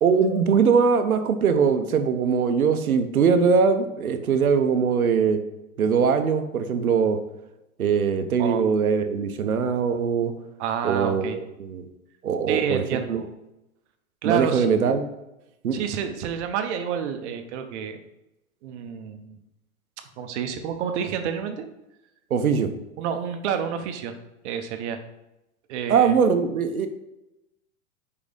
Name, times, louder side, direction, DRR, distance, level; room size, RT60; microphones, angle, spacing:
voice 1, 0.0-5.4 5.8-7.2 7.8-10.3 10.8-11.9 12.2-13.2 14.2-15.1 15.6-15.8 22.3-22.7 25.9-26.9, right 6 dB, 90° right, 8 dB, 0.9 m, -21 dB
voice 2, 10.6-11.4 12.5-13.2 14.2-14.7 15.7-18.0 18.6-19.4 20.2-21.7 23.0-24.1 24.4-25.0 25.7-26.1, right 8 dB, 55° right, 6 dB, 1.1 m, -29 dB
5.0 x 4.8 x 5.2 m, 0.92 s
hypercardioid pair, 115°, 42 cm